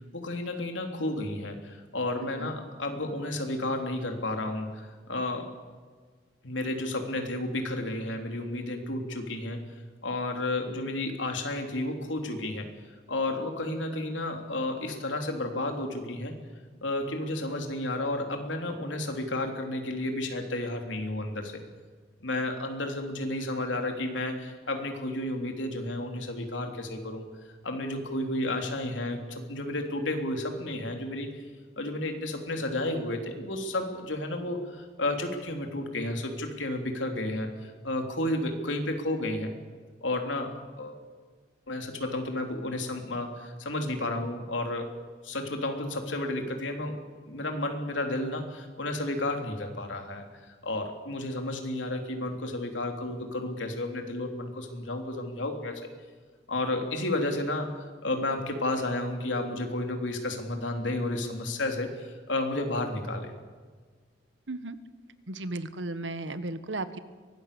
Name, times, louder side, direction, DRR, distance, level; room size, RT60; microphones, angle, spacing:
voice 1, 0.1-5.6 6.4-9.6 10.0-12.7 13.1-16.3 16.8-21.6 22.2-27.3 27.6-31.4 31.8-39.5 40.0-41.0 41.7-44.9 45.2-47.0 47.3-55.8 56.5-63.3, left 1 dB, 85° left, 4 dB, 3.4 m, -32 dB
voice 2, 64.5-64.8 65.3-67.0, right 2 dB, 75° right, 12 dB, 1.4 m, -35 dB
23.5 x 18.5 x 7.0 m, 1.5 s
head